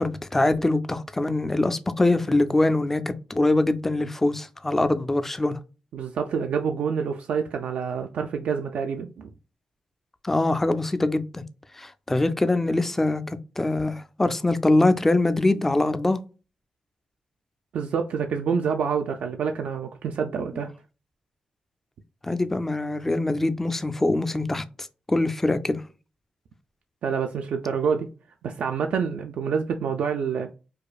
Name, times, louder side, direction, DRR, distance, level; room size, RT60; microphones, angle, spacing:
voice 1, 0.0-5.6 10.2-11.4 11.7-16.2 20.4-20.5 22.2-24.6 25.1-25.8, left 2 dB, 10° left, 0.3 m, -23 dB
voice 2, 5.9-9.3 17.7-20.7 27.0-28.1 28.4-30.5, right 6 dB, 80° right, 0.3 m, -27 dB
4.7 x 2.4 x 2.3 m
wide cardioid pair, 150°, 2 cm